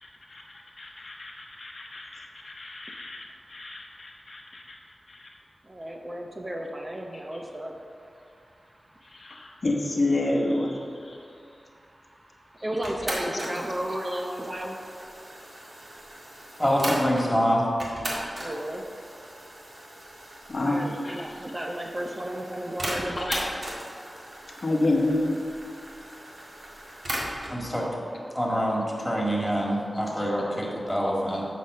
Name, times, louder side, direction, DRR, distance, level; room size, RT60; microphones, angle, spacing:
voice 1, 0.0-3.2 3.5-4.8 5.1-5.3 9.0-11.2 13.2-13.4 20.5-21.4 23.1-23.4 24.6-25.4 28.2-28.3 30.2-30.3, left 2 dB, 55° left, -1 dB, 1.0 m, -29 dB
voice 2, 5.6-9.6 11.1-16.6 18.0-23.5 23.9-24.6 25.7-27.7 28.3-28.4, right 1 dB, 30° right, 1 dB, 0.6 m, -37 dB
sound 1, 12.8-17.3 17.8-27.6, right 1 dB, 45° right, 1.9 m, -37 dB
voice 3, 16.6-17.7 27.5-27.9 28.3-31.5, equal, 5° left, -3 dB, 2.0 m, -25 dB
7.7 x 5.0 x 6.7 m, 2.3 s
wide cardioid pair, 90°, 0 cm